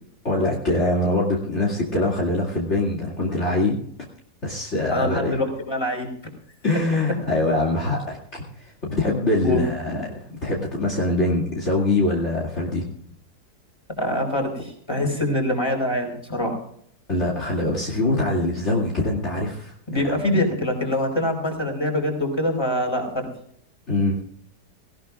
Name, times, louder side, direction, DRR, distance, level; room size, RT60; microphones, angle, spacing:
voice 1, 0.2-3.8 4.4-5.3 6.6-10.0 10.4-12.9 17.1-19.7 23.9-24.2, left 2 dB, 40° left, -3 dB, 2.7 m, -23 dB
voice 2, 4.9-6.1 9.4-10.0 14.0-16.6 19.9-23.3, left 1 dB, 15° left, 2 dB, 4.6 m, -24 dB
19.0 x 18.0 x 2.4 m, 0.65 s
omnidirectional pair, 1.8 m